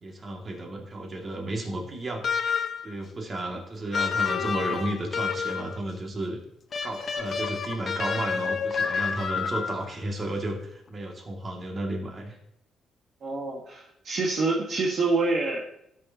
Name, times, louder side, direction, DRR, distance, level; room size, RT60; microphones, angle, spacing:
voice 1, 0.0-2.5 2.8-6.4 6.8-12.4, right 1 dB, 40° right, 1 dB, 2.1 m, -33 dB
sound 1, 2.2-2.9 3.9-5.8 6.7-9.9, left 6 dB, 45° left, 0.9 m, -29 dB
voice 2, 13.2-15.6, right 3 dB, 60° right, -2 dB, 1.4 m, -26 dB
13.0 x 6.5 x 2.8 m, 0.76 s
cardioid pair, 90°, 0 cm